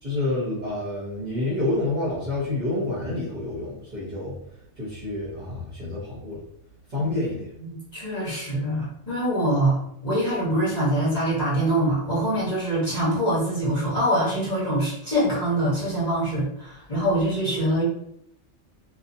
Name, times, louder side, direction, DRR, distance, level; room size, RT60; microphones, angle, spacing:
voice 1, 0.0-4.4 4.8-6.4 6.9-7.5, left 2 dB, 40° right, -7 dB, 0.8 m, -28 dB
voice 2, 7.6-9.8 10.0-17.8, right 1 dB, 35° left, -9 dB, 1.0 m, -24 dB
2.6 x 2.3 x 2.5 m, 0.74 s
omnidirectional pair, 1.3 m